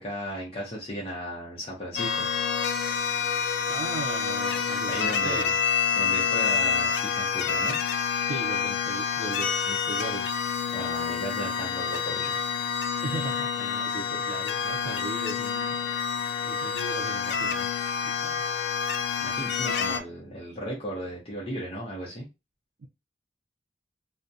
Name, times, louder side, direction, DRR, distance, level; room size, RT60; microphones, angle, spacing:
voice 1, 0.0-2.3 4.9-5.6 5.9-7.8 10.7-12.4 19.2-22.3, equal, 35° left, 0.7 m, -35 dB
sound 1, 2.0-20.0, left 6 dB, 80° left, 0.3 m, -28 dB
voice 2, 3.7-5.5 8.2-10.4 13.0-15.8 16.4-17.7 18.0-18.5 22.8-22.9, right 3 dB, 90° right, 0.4 m, -37 dB
2.3 x 2.1 x 2.6 m
head